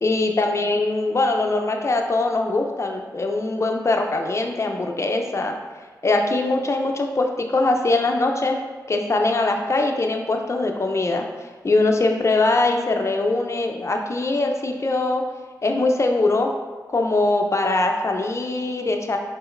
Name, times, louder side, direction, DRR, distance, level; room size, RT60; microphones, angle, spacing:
voice 1, 0.0-5.6 6.0-8.6 8.9-15.2 15.6-16.5 16.9-19.2, left 2 dB, 40° left, 3 dB, 0.5 m, -22 dB
4.8 x 2.8 x 2.6 m, 1.5 s
cardioid pair, 55°, 7 cm